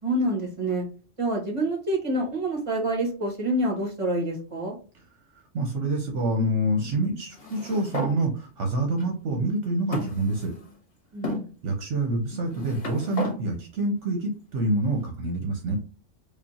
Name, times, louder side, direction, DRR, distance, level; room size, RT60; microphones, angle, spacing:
voice 1, 0.0-0.8 1.2-4.7 11.1-11.5, right 1 dB, 25° right, -2 dB, 1.7 m, -27 dB
voice 2, 5.5-10.5 11.6-15.8, right 1 dB, 70° right, 2 dB, 1.1 m, -27 dB
sound 1, 7.3-8.2 9.0-9.1 9.9-10.7 11.2-11.4 12.3-13.4, left 1 dB, 40° left, 1.0 m, -33 dB
4.9 x 2.4 x 2.8 m, 0.36 s
omnidirectional pair, 1.3 m